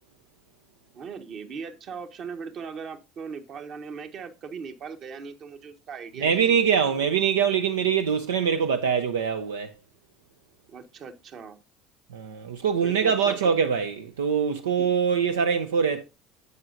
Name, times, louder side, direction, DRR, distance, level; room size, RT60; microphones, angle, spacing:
voice 1, 0.9-6.5 10.7-11.6 12.8-13.4 14.8-14.9, right 5 dB, 50° right, 1.4 m, -39 dB
voice 2, 6.2-9.7 12.1-16.0, right 7 dB, 80° right, 0.5 m, -23 dB
10.5 x 7.9 x 2.6 m
hypercardioid pair, 65°, 0 cm